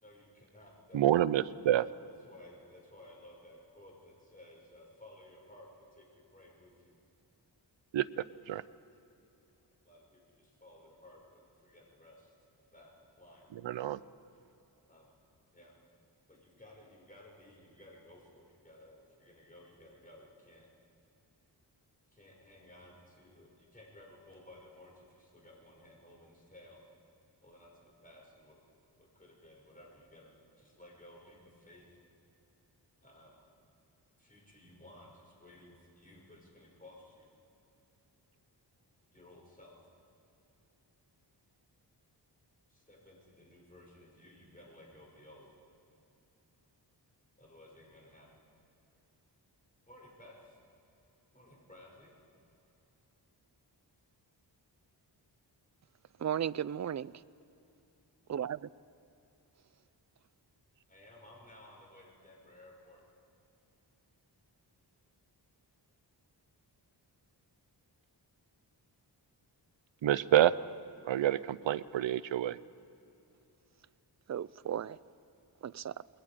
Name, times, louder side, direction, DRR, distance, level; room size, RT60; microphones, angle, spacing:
voice 1, 0.0-1.0 2.0-7.0 9.8-12.3 12.7-13.5 14.9-15.1 15.5-15.7 16.3-20.7 22.1-26.8 27.4-28.6 29.0-32.0 33.0-33.4 34.2-37.3 39.1-39.8 42.7-45.5 47.4-48.3 49.9-50.6 51.3-52.1 60.9-63.1, left 1 dB, 20° left, -3 dB, 6.2 m, -57 dB
voice 2, 0.9-1.9 7.9-8.6 13.6-14.0 70.0-70.5 71.0-72.6, right 12 dB, 85° right, 15 dB, 0.6 m, -28 dB
voice 3, 56.2-57.1 58.3-58.6 74.3-75.0 75.6-75.9, right 9 dB, 40° right, 16 dB, 0.4 m, -35 dB
28.5 x 21.0 x 5.1 m, 2.9 s
wide cardioid pair, 80°, 44 cm